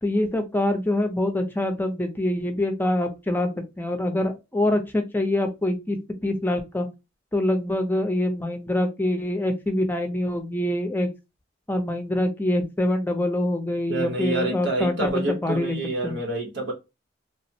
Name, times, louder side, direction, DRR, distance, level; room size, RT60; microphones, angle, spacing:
voice 1, 0.0-3.5 3.8-6.0 6.2-6.9 7.3-11.1 11.7-15.8 16.0-16.2, left 1 dB, 10° left, 0.6 m, -25 dB
voice 2, 13.9-16.7, right 2 dB, 70° right, 1.0 m, -27 dB
3.3 x 2.1 x 2.7 m
head